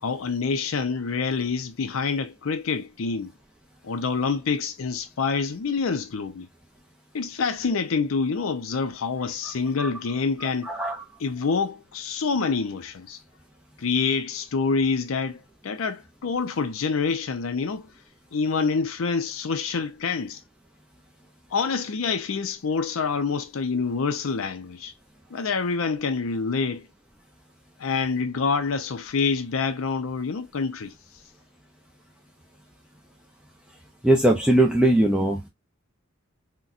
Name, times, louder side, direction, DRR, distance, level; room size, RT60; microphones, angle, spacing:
voice 1, 0.0-3.3 3.8-6.5 7.1-10.7 11.2-13.2 13.8-17.9 18.3-20.4 21.5-24.9 25.3-26.9 27.8-30.9, left 5 dB, 90° left, 0.5 m, -27 dB
voice 2, 10.6-11.0 34.0-35.4, right 1 dB, 5° right, 0.5 m, -20 dB
3.9 x 2.2 x 2.4 m
head